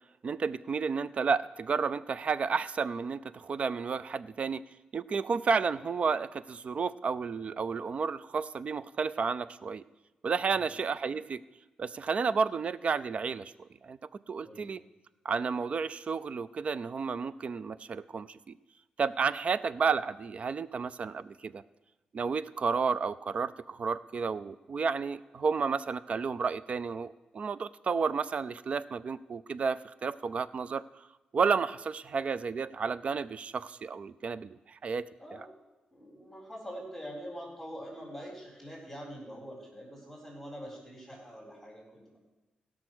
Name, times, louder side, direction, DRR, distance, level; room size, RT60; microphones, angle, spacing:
voice 1, 0.2-4.6 4.9-9.8 10.2-11.4 11.8-14.8 15.2-18.5 19.0-21.6 22.1-30.8 31.3-35.1, right 5 dB, 50° right, 17 dB, 0.4 m, -31 dB
voice 2, 35.2-35.5 35.9-42.2, equal, ahead, -7 dB, 4.1 m, -44 dB
16.5 x 6.1 x 6.2 m, 1.1 s
cardioid pair, 85°, 3 cm